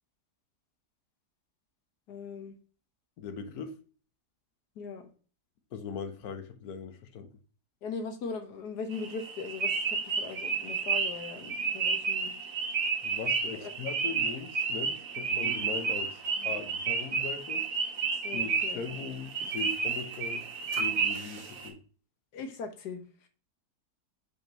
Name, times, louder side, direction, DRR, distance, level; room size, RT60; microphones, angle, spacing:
voice 1, 2.1-2.5 4.7-5.1 7.8-12.3 13.5-13.7 16.4-16.6 18.1-18.8 22.3-23.3, left 5 dB, 85° left, 1.7 m, -40 dB
voice 2, 3.2-3.8 5.7-7.3 13.0-17.6 18.3-20.4 20.8-21.8, left 6 dB, 70° left, 1.3 m, -40 dB
sound 1, 8.9-21.7, right 5 dB, 60° right, 1.6 m, -31 dB
5.5 x 4.4 x 4.3 m
omnidirectional pair, 1.7 m